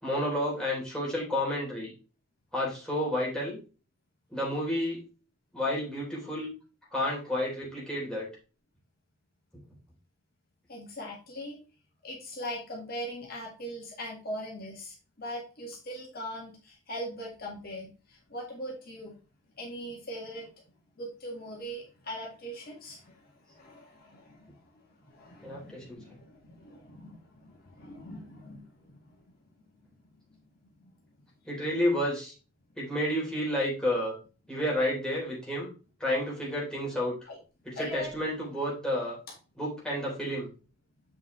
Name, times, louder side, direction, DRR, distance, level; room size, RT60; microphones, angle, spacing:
voice 1, 0.0-1.9 2.5-3.6 4.3-5.0 5.5-6.5 6.9-8.3 25.4-26.0 31.5-32.3 32.8-34.1 34.5-35.7 36.0-37.1 37.7-39.2 39.6-40.5, left 1 dB, 5° left, -5 dB, 3.6 m, -30 dB
voice 2, 10.7-11.6 12.0-19.2 19.6-20.5 21.0-29.2 30.6-30.9 37.3-37.4 37.7-38.1, equal, 50° left, -2 dB, 2.1 m, -41 dB
7.7 x 5.5 x 3.2 m, 0.33 s
head